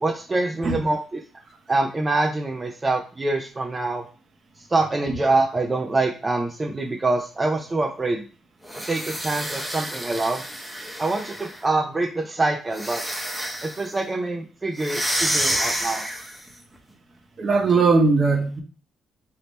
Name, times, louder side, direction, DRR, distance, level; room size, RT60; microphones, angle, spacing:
voice 1, 0.0-1.2 1.7-4.0 4.7-8.2 8.9-10.4 11.0-13.0 13.6-16.0, right 2 dB, 25° right, 1 dB, 0.6 m, -25 dB
sound 1, 8.6-11.6 12.7-13.9 14.8-16.5, equal, ahead, 0.9 m, -29 dB
voice 2, 17.4-18.6, right 4 dB, 45° right, 2 dB, 1.0 m, -19 dB
3.4 x 2.8 x 4.1 m, 0.36 s
cardioid pair, 90°, 0 cm